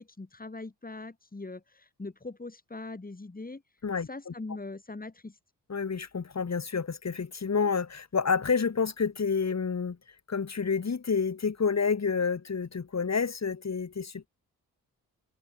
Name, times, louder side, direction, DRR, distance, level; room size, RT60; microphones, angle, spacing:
voice 1, 0.0-3.6 4.1-5.4, left 3 dB, 25° left, 4.1 m, -41 dB
voice 2, 3.8-4.3 5.7-10.0 10.3-14.3, left 5 dB, 45° left, 3.4 m, -29 dB
supercardioid pair, 50°, 36 cm